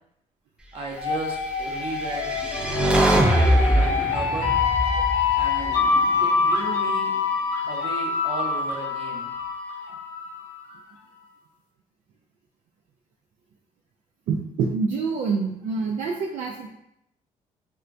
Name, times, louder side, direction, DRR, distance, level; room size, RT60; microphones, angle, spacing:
voice 1, 0.7-4.5 5.4-5.8 6.2-7.1 7.7-9.3, right 3 dB, 45° right, -1 dB, 0.8 m, -35 dB
sound 1, 1.0-10.6, left 5 dB, 80° left, 0.6 m, -25 dB
sound 2, 1.8-6.1, equal, 5° right, 0.4 m, -23 dB
voice 2, 14.3-16.7, right 5 dB, 70° right, 0 dB, 0.4 m, -26 dB
4.3 x 2.2 x 2.5 m, 0.79 s
cardioid pair, 120°, 14 cm